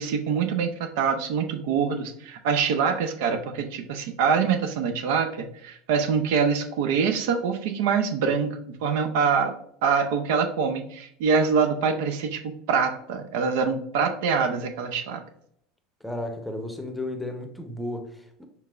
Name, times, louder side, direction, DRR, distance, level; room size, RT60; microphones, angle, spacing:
voice 1, 0.0-9.5 9.8-15.2, right 6 dB, 70° right, 0.5 m, -25 dB
voice 2, 16.0-18.4, left 1 dB, 5° left, 0.7 m, -33 dB
4.6 x 3.4 x 2.4 m
hypercardioid pair, 95°, 0 cm